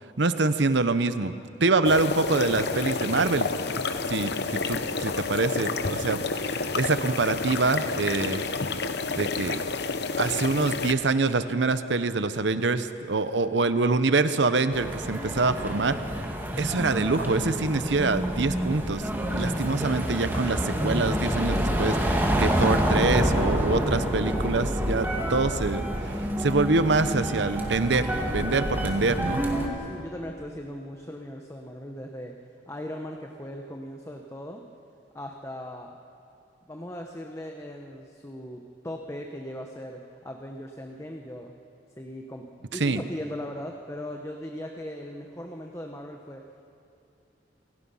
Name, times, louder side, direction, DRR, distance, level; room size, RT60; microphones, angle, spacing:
voice 1, 0.2-1.3 1.6-3.5 4.1-8.4 9.1-9.6 10.2-16.0 16.6-19.0 19.3-29.4 42.8-43.0, right 3 dB, 75° right, 11 dB, 0.9 m, -25 dB
sound 1, 1.8-10.9, left 4 dB, 65° left, 0.9 m, -29 dB
sound 2, 14.7-29.7, equal, 10° right, 2.1 m, -27 dB
voice 2, 29.7-32.4 32.7-34.6 35.1-35.9 36.7-41.5 42.0-46.4, left 1 dB, 15° left, 2 dB, 1.0 m, -38 dB
27.5 x 17.0 x 5.7 m, 2.7 s
head